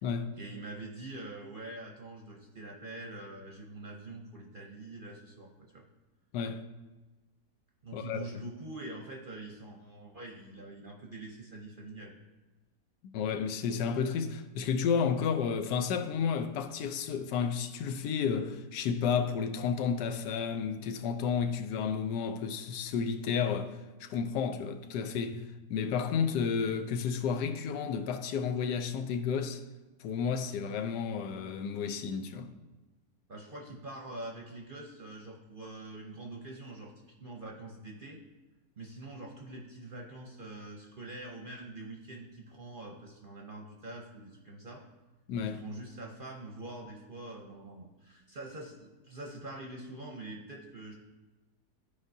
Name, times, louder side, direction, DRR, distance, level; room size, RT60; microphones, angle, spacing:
voice 1, 0.4-5.9 7.8-12.1 33.3-38.2 38.8-44.8 45.4-50.9, right 2 dB, 45° right, 0.7 m, -45 dB
voice 2, 13.1-29.6 30.0-32.5 45.3-45.6, left 6 dB, 90° left, 1.2 m, -32 dB
13.5 x 4.9 x 2.7 m
omnidirectional pair, 1.8 m